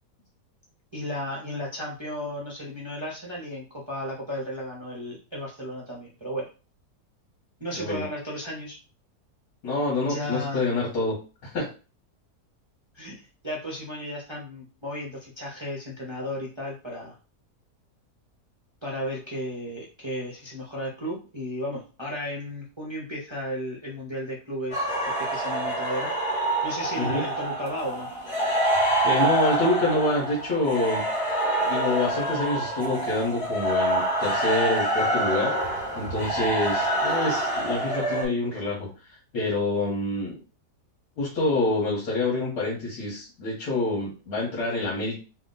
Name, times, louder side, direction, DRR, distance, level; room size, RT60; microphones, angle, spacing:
voice 1, 0.9-6.5 7.6-8.8 10.0-10.6 12.9-17.2 18.8-24.9 25.2-26.1 26.6-28.1, equal, 30° right, -3 dB, 0.5 m, -34 dB
voice 2, 9.6-11.2 11.4-11.7 27.0-27.2 29.0-31.0 31.6-40.4 41.2-45.2, left 2 dB, 70° left, -5 dB, 1.8 m, -27 dB
sound 1, 24.7-38.3, right 1 dB, 20° left, 1.9 m, -26 dB
3.6 x 2.3 x 3.9 m, 0.34 s
omnidirectional pair, 1.7 m